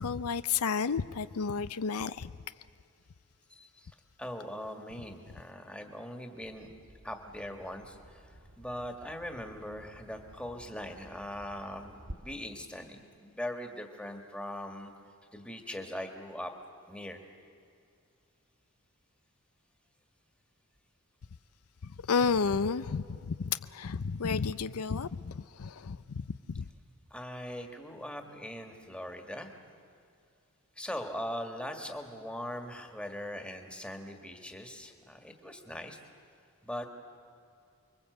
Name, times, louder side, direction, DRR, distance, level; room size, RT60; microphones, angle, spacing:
voice 1, 0.0-2.3 21.8-26.7, left 5 dB, 85° left, 14 dB, 0.6 m, -32 dB
voice 2, 3.5-6.7 7.0-14.9 15.3-16.5 16.9-17.2 27.1-29.5 30.8-36.0 36.6-36.9, left 1 dB, 5° left, 4 dB, 1.8 m, -41 dB
Bird vocalization bird call bird song, 6.4-12.1, equal, 60° right, 1.9 m, -52 dB
29.5 x 23.0 x 8.0 m, 2.4 s
head